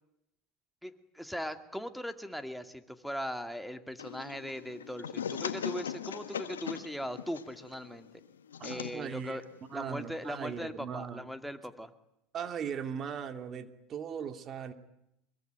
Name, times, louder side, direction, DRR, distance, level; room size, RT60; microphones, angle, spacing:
voice 1, 0.8-8.1 8.6-9.4 9.7-11.9, equal, ahead, 8 dB, 2.5 m, -39 dB
sound 1, 4.0-10.6, left 8 dB, 90° left, 1.4 m, -41 dB
voice 2, 8.6-9.4 9.7-11.3 12.3-14.7, right 7 dB, 40° right, 9 dB, 2.6 m, -38 dB
24.0 x 23.0 x 9.4 m, 0.82 s
hypercardioid pair, 80°, 0 cm